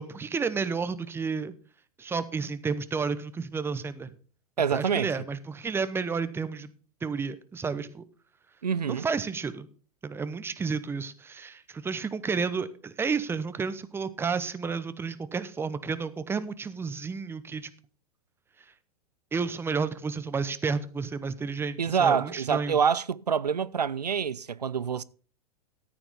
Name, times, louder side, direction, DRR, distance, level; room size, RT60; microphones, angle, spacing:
voice 1, 0.0-1.5 2.0-4.1 4.7-6.7 7.0-8.0 8.9-9.7 10.0-17.7 19.3-22.8, right 5 dB, 10° right, 0.9 m, -31 dB
voice 2, 4.6-5.1 8.6-9.1 21.8-25.0, right 7 dB, 90° right, 0.5 m, -26 dB
14.0 x 8.8 x 3.6 m
figure-of-eight pair, 105°, 20 cm